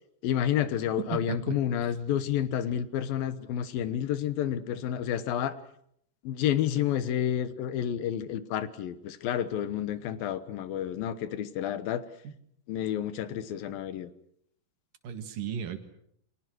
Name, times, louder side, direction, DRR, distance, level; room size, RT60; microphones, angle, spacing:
voice 1, 0.2-5.6 6.2-12.0 12.7-14.1, left 10 dB, 90° left, 13 dB, 3.1 m, -30 dB
voice 2, 1.0-1.6 12.2-12.3 15.0-15.8, right 8 dB, 75° right, 8 dB, 3.4 m, -35 dB
30.0 x 24.0 x 6.3 m, 0.71 s
omnidirectional pair, 4.0 m